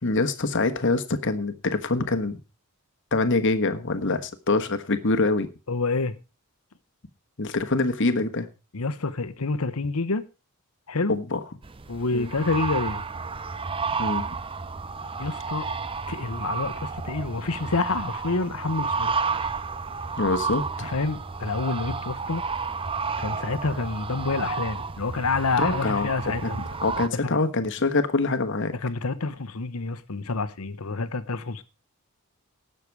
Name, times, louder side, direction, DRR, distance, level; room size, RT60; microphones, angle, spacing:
voice 1, 0.0-2.4 3.1-5.5 7.4-8.5 11.1-11.4 12.1-12.3 14.0-14.4 20.2-20.9 25.6-26.1 26.4-28.7, left 3 dB, 55° left, 1.3 m, -25 dB
voice 2, 5.7-6.2 8.7-10.2 10.9-11.1 11.9-13.0 15.2-15.7 16.1-19.1 20.8-22.4 23.2-26.6 27.1-27.4 28.8-31.6, left 3 dB, 75° left, 1.0 m, -28 dB
sound 1, 11.6-27.1, right 4 dB, 25° right, 0.6 m, -31 dB
18.0 x 6.8 x 4.7 m
head